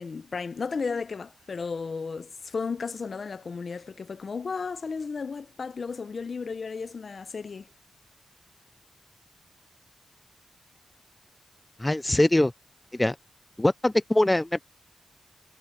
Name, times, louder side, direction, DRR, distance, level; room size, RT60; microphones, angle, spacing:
voice 1, 0.0-7.7, left 5 dB, 60° left, 0.7 m, -34 dB
voice 2, 11.8-12.5 12.9-13.2 13.6-14.7, left 1 dB, 15° left, 0.4 m, -22 dB
cardioid pair, 65°, 0 cm